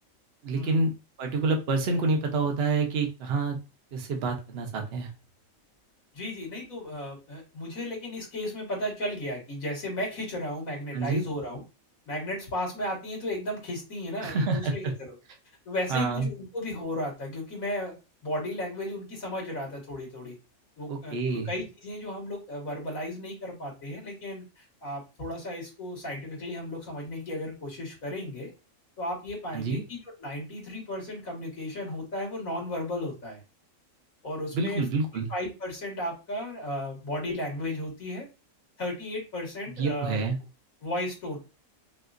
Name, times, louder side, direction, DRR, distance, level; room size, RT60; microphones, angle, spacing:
voice 1, 0.4-0.9 1.2-3.6 3.9-5.1 10.9-11.2 14.2-14.9 15.9-16.3 20.9-21.5 29.5-29.8 34.5-35.3 39.8-40.4, right 3 dB, 55° right, 3 dB, 1.0 m, -27 dB
voice 2, 6.1-11.6 12.1-15.1 15.7-17.9 18.2-20.3 20.8-28.5 29.0-33.4 34.2-34.8 35.3-38.3 38.8-40.2 40.8-41.4, left 1 dB, 85° left, -1 dB, 2.3 m, -34 dB
5.7 x 2.4 x 2.5 m, 0.29 s
omnidirectional pair, 1.4 m